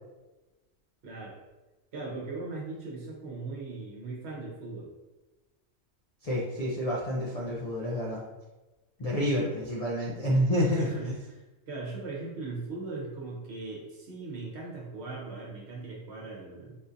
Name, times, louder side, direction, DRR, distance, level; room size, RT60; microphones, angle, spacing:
voice 1, 1.0-1.4 1.9-4.9 9.0-9.3 10.7-16.8, right 3 dB, 55° right, -4 dB, 1.0 m, -39 dB
voice 2, 6.2-8.2 9.0-10.9, equal, 60° left, -5 dB, 0.4 m, -28 dB
3.7 x 2.6 x 2.6 m, 1.1 s
omnidirectional pair, 1.4 m